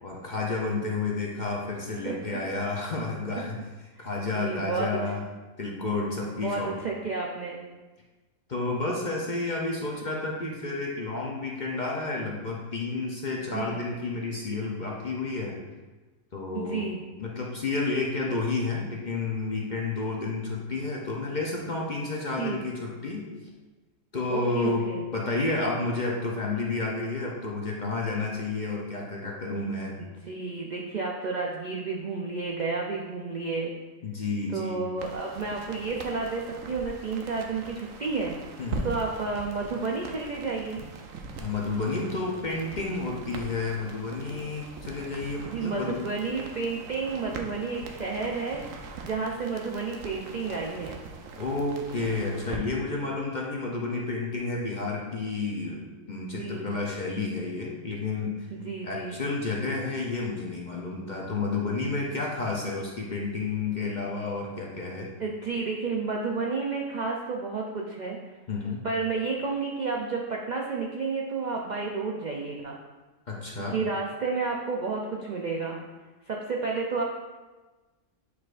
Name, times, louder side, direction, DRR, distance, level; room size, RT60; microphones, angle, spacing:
voice 1, 0.0-3.6 4.0-5.2 5.6-6.7 8.5-15.6 16.3-16.9 17.2-23.3 24.1-30.0 34.0-34.8 38.6-38.9 41.4-46.0 51.4-55.8 56.1-58.5 58.8-65.1 68.5-68.8 73.3-73.8, left 3 dB, 45° left, -2 dB, 0.6 m, -31 dB
voice 2, 2.0-2.4 4.0-4.1 4.3-5.0 6.4-7.6 13.4-13.8 16.5-17.0 22.4-22.6 24.3-25.0 30.0-33.7 34.5-38.4 38.8-40.8 45.4-51.0 56.3-56.7 58.5-59.2 65.2-68.2 68.8-72.8 73.6-75.8 76.3-77.0, right 4 dB, 60° right, -1 dB, 0.4 m, -31 dB
sound 1, 35.0-52.6, right 4 dB, 80° right, 1.0 m, -42 dB
8.3 x 4.7 x 2.5 m, 1.2 s
omnidirectional pair, 1.4 m